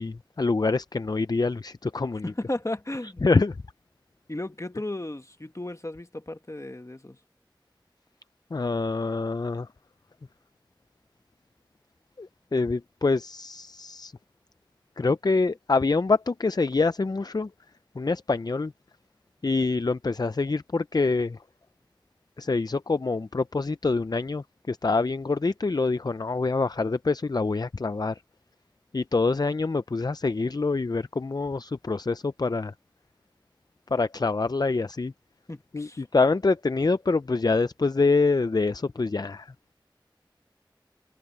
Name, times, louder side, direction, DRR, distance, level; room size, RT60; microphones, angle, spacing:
voice 1, 0.0-2.3 3.2-3.6 8.5-9.7 12.2-14.1 15.0-17.5 18.0-18.7 19.4-21.4 22.4-28.2 28.9-32.7 33.9-35.1 35.7-39.5, left 3 dB, 55° left, 0.4 m, -25 dB
voice 2, 2.2-3.2 4.3-7.2 35.5-36.1, left 1 dB, 35° left, 1.2 m, -34 dB
wide cardioid pair, 45°, 8 cm